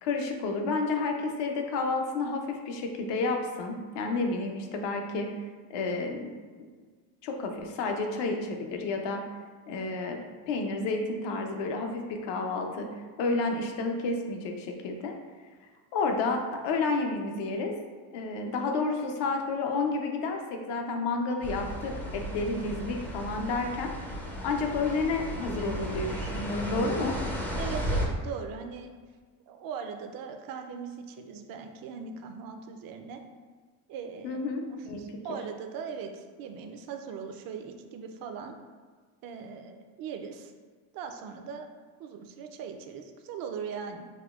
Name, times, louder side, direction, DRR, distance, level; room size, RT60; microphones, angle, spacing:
voice 1, 0.0-5.3 5.7-6.3 7.2-9.2 9.7-10.2 10.5-12.9 13.2-15.2 15.9-17.7 18.1-23.9 24.4-27.2 34.2-35.0 35.3-35.4, left 3 dB, 65° left, 3 dB, 0.6 m, -30 dB
sound 1, 21.4-28.1, equal, 5° left, 0.4 m, -34 dB
voice 2, 27.6-28.9 29.5-33.2 33.9-34.4 34.7-38.6 39.2-40.5 40.9-41.7 42.0-44.0, right 6 dB, 50° right, 5 dB, 0.5 m, -40 dB
4.9 x 2.1 x 2.3 m, 1.5 s
cardioid pair, 105°, 44 cm